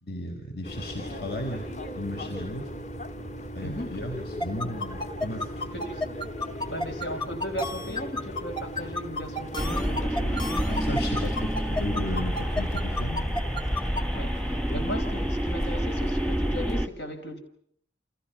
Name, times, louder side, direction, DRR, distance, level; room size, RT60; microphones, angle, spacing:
voice 1, 0.0-1.7 1.9-2.7 3.5-5.7 10.7-13.6, equal, 65° left, 4.7 m, -34 dB
sound 1, 0.6-16.9, equal, 40° left, 2.2 m, -39 dB
voice 2, 3.6-4.0 5.7-6.0 6.7-10.6 14.1-17.4, equal, 85° left, 5.5 m, -36 dB
sound 2, 4.4-14.0, left 1 dB, 25° left, 2.0 m, -31 dB
sound 3, 9.6-16.9, equal, 5° left, 1.2 m, -28 dB
30.0 x 28.5 x 5.8 m
head